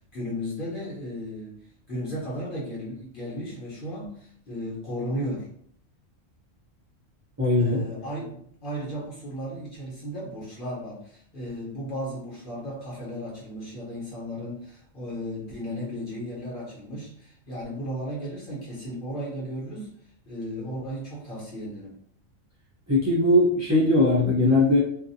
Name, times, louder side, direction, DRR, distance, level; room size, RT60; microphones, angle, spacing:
voice 1, 0.1-1.6 1.9-5.5 7.6-19.9 20.3-22.0, equal, 45° left, -6 dB, 1.1 m, -35 dB
voice 2, 7.4-7.8 22.9-24.8, left 2 dB, 25° right, -7 dB, 0.3 m, -20 dB
2.5 x 2.1 x 2.6 m, 0.64 s
omnidirectional pair, 1.4 m